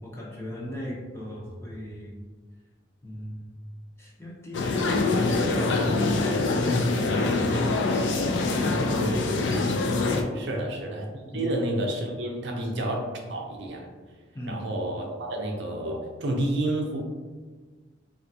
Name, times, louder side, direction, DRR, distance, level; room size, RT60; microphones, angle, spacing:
voice 1, 0.0-2.1 3.0-3.5 4.0-5.1 5.7-6.5 7.1-8.0 8.5-9.4 10.4-10.7 11.3-11.5 14.3-14.7, equal, 15° left, -5 dB, 0.6 m, -38 dB
sound 1, 4.5-10.2, left 3 dB, 75° left, 0.3 m, -24 dB
voice 2, 10.3-11.1 11.3-13.9 14.5-17.0, right 1 dB, 65° right, 1 dB, 0.5 m, -30 dB
3.4 x 2.3 x 2.6 m, 1.4 s
head